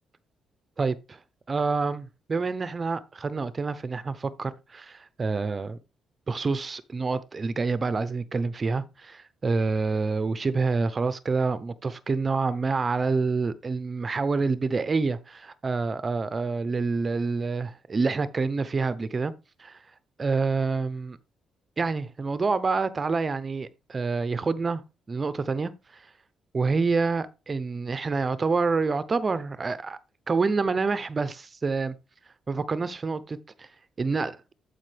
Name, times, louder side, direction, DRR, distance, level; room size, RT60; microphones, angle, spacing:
voice 1, 0.8-1.2 1.5-5.8 6.3-19.3 19.6-19.8 20.2-21.2 21.8-24.8 25.1-26.1 26.5-30.0 30.3-32.0 32.5-33.7 34.0-34.4, right 4 dB, 35° right, 0.7 m, -27 dB
12.0 x 5.1 x 3.3 m
cardioid pair, 90°, 0 cm